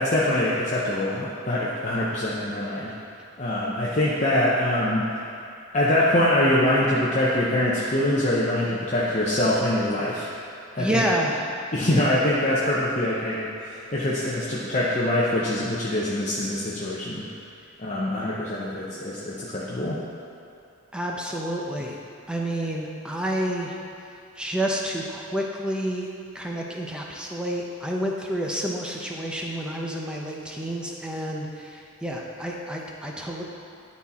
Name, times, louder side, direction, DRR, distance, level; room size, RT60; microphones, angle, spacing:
voice 1, 0.0-2.9 3.4-5.1 5.7-10.3 10.7-11.0 11.7-17.2 17.8-20.0, left 1 dB, 35° left, -7 dB, 0.8 m, -24 dB
voice 2, 10.8-11.5 20.9-22.0 22.3-23.8 24.4-26.1 26.3-33.4, right 1 dB, 5° right, -1 dB, 0.7 m, -29 dB
11.0 x 4.2 x 4.1 m, 2.6 s
head